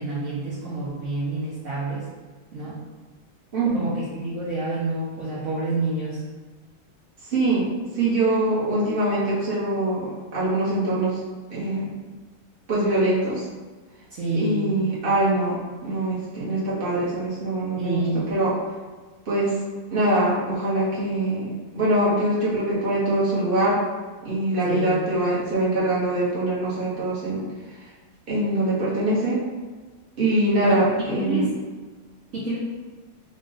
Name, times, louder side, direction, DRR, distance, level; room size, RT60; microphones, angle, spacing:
voice 1, 0.0-2.0 2.5-2.7 3.7-6.2 14.1-14.7 17.8-18.2 24.6-25.0 30.6-30.7 31.1-31.5 32.3-32.6, right 2 dB, 55° right, -8 dB, 0.9 m, -28 dB
voice 2, 3.5-3.9 7.3-7.7 7.9-11.2 11.5-11.9 12.7-13.4 14.3-18.5 19.3-19.5 19.9-23.8 24.2-27.4 28.3-29.4 30.2-31.5, right 1 dB, 35° right, -8 dB, 1.1 m, -23 dB
3.8 x 2.4 x 3.9 m, 1.4 s
omnidirectional pair, 2.0 m